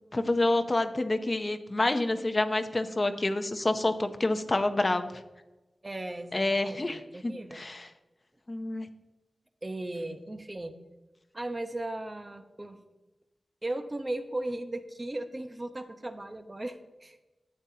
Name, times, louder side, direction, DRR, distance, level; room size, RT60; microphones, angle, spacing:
voice 1, 0.1-5.1 6.3-7.9 8.5-8.9, left 2 dB, 30° left, 8 dB, 0.7 m, -28 dB
voice 2, 5.8-7.6 9.6-10.7 11.3-12.8 13.6-17.2, right 1 dB, 25° right, 8 dB, 0.8 m, -37 dB
12.5 x 8.7 x 2.8 m, 1.1 s
wide cardioid pair, 85°, 0 cm